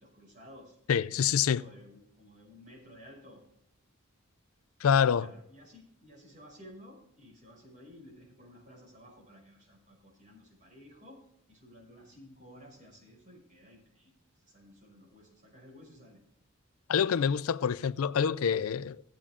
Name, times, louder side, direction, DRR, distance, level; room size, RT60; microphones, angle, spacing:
voice 1, 0.0-0.8 1.1-3.4 5.2-11.2 11.5-16.2, equal, 40° right, 5.7 m, -54 dB
voice 2, 0.9-1.6 4.8-5.3 16.9-19.0, left 7 dB, 80° left, 0.4 m, -26 dB
15.0 x 8.7 x 3.6 m
head